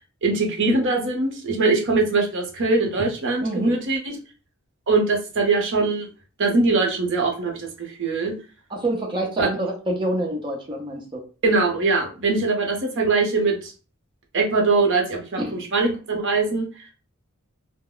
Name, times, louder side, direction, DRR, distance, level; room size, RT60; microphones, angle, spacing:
voice 1, 0.2-4.1 4.9-6.1 6.4-8.3 9.4-9.5 11.4-13.7 14.3-16.8, right 3 dB, 55° right, 2 dB, 0.7 m, -22 dB
voice 2, 8.7-11.2 15.4-15.6, right 1 dB, 20° right, -1 dB, 0.7 m, -26 dB
2.2 x 2.1 x 3.8 m, 0.35 s
head